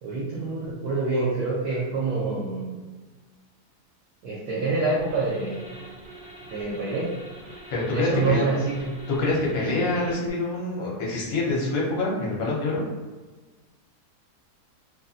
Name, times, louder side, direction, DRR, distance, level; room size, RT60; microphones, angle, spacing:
voice 1, 0.0-2.8 4.2-5.8 6.5-7.1 7.9-8.9, right 3 dB, 85° right, -5 dB, 1.2 m, -26 dB
sound 1, 5.0-10.3, right 1 dB, 15° right, 0.7 m, -44 dB
voice 2, 7.7-8.4 9.1-12.8, left 2 dB, 65° left, -4 dB, 1.1 m, -26 dB
2.8 x 2.5 x 2.4 m, 1.3 s
omnidirectional pair, 1.7 m